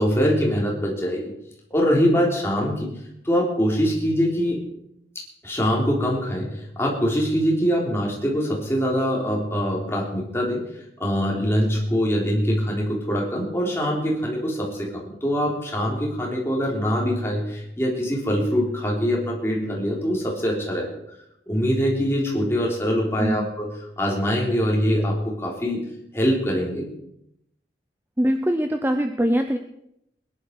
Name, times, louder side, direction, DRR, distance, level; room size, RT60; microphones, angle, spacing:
voice 1, 0.0-1.3 1.7-2.9 3.2-4.6 5.4-10.6 11.0-20.9 21.5-25.8 26.1-26.8, equal, 15° left, -2 dB, 3.4 m, -23 dB
voice 2, 28.2-29.6, equal, 10° right, 6 dB, 0.6 m, -22 dB
20.5 x 11.0 x 4.7 m, 0.79 s
head